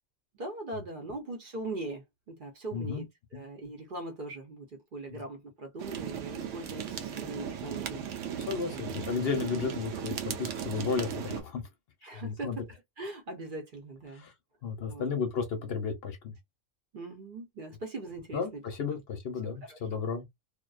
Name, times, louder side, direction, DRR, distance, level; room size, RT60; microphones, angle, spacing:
voice 1, 0.3-8.0 8.7-8.8 12.0-14.3 14.9-15.2 16.9-18.6 18.9-19.0 19.4-20.0, right 2 dB, 50° right, 0.8 m, -41 dB
voice 2, 2.7-3.0 3.3-3.4 5.1-5.2 8.5-11.6 12.2-12.6 14.1-14.3 14.6-16.3 18.3-20.2, left 5 dB, 60° left, 0.8 m, -33 dB
sound 1, 5.8-11.4, right 8 dB, 85° right, 1.0 m, -37 dB
2.4 x 2.2 x 2.3 m
omnidirectional pair, 1.3 m